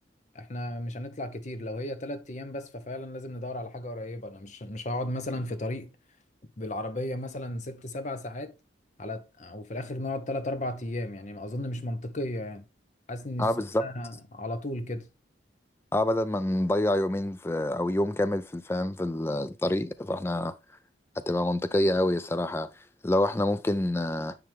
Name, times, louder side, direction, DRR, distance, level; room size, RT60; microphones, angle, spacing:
voice 1, 0.3-5.9 6.6-8.5 9.0-12.7 13.1-15.1, left 1 dB, 40° left, 0.8 m, -35 dB
voice 2, 13.4-13.9 15.9-20.5 21.3-22.7 23.0-24.4, left 1 dB, 15° left, 0.3 m, -27 dB
9.3 x 3.5 x 3.4 m
head